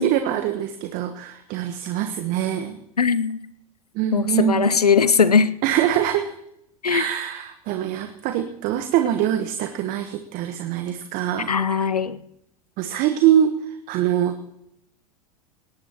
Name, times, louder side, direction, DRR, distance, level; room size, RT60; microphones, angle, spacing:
voice 1, 0.0-2.8 3.9-4.8 5.6-6.3 6.9-11.9 12.8-14.5, right 10 dB, 45° right, 8 dB, 1.2 m, -24 dB
voice 2, 3.0-3.4 4.1-5.5 6.8-7.0 11.5-12.2, left 6 dB, 90° left, 16 dB, 0.7 m, -19 dB
19.0 x 18.5 x 3.0 m, 0.79 s
figure-of-eight pair, 85°, 19 cm